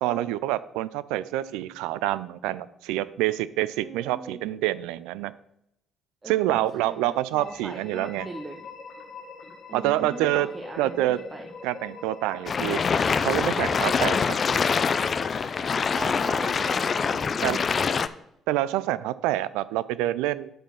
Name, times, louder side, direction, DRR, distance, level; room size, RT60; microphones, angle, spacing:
voice 1, 0.0-5.3 6.3-8.3 9.7-10.5 10.8-11.2 11.6-12.8 13.2-14.4 17.4-17.6 18.5-20.5, right 15 dB, 75° right, 17 dB, 0.3 m, -27 dB
voice 2, 3.8-4.5 6.2-8.6 9.7-11.5 15.9-17.8, right 2 dB, 30° right, 4 dB, 0.9 m, -40 dB
sound 1, 7.4-14.1, left 4 dB, 60° left, 1.8 m, -44 dB
sound 2, 12.5-18.1, left 5 dB, 45° left, 0.4 m, -24 dB
6.7 x 5.1 x 5.8 m, 0.80 s
hypercardioid pair, 50°, 0 cm